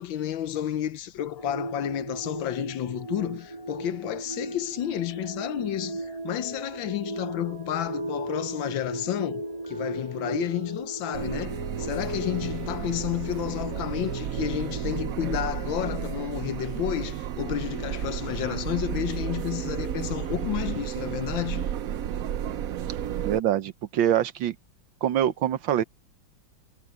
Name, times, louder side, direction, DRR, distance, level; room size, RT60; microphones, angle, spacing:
voice 1, 0.0-21.7, left 12 dB, 80° left, 1.6 m, -31 dB
sound 1, 1.4-16.3, right 1 dB, 20° right, 1.4 m, -37 dB
sound 2, 11.1-23.4, right 10 dB, 65° right, 0.9 m, -32 dB
voice 2, 23.2-24.6 25.0-25.8, right 11 dB, 80° right, 1.7 m, -24 dB
omnidirectional pair, 2.1 m